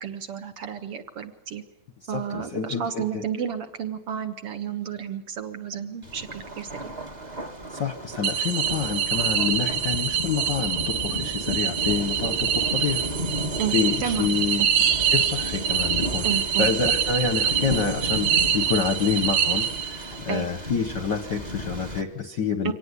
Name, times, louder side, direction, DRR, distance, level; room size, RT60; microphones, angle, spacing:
voice 1, 0.0-1.6 2.1-6.9 13.6-13.7 14.0-14.7 16.2-16.7 20.3-20.5 22.6-22.7, right 8 dB, 55° right, 7 dB, 2.0 m, -31 dB
voice 2, 2.0-3.2 7.7-13.0 13.7-14.6 15.1-16.3 16.6-22.7, left 6 dB, 55° left, 8 dB, 1.2 m, -27 dB
Thunder, 6.0-22.0, equal, 20° right, 1.2 m, -34 dB
sound 1, 8.2-20.2, right 8 dB, 90° right, 2.8 m, -25 dB
24.5 x 18.0 x 9.8 m, 0.84 s
omnidirectional pair, 3.5 m